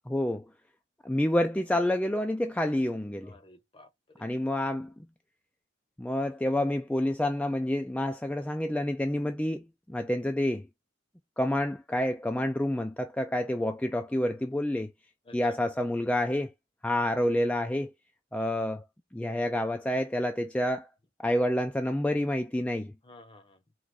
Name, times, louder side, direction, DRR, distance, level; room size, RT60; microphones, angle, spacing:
voice 1, 0.1-0.4 1.0-3.3 4.2-4.9 6.0-10.7 11.4-14.9 15.3-16.5 16.8-17.9 18.3-18.8 19.1-20.9 21.2-22.9, left 1 dB, 5° left, 0.3 m, -28 dB
voice 2, 3.2-4.3 15.2-15.7 18.3-18.6 23.0-23.6, left 2 dB, 30° left, 0.8 m, -54 dB
4.5 x 2.5 x 3.7 m
head